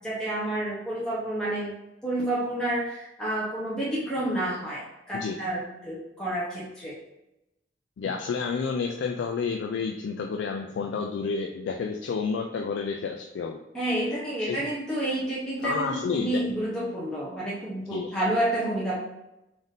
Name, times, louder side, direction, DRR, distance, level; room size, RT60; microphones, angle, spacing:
voice 1, 0.0-1.7 2.0-7.0 13.7-19.0, right 1 dB, 5° left, -8 dB, 0.7 m, -29 dB
voice 2, 8.0-13.6 14.4-14.6 15.6-16.4 17.9-18.1, left 5 dB, 75° left, 3 dB, 0.3 m, -30 dB
3.5 x 2.5 x 3.9 m, 0.92 s
head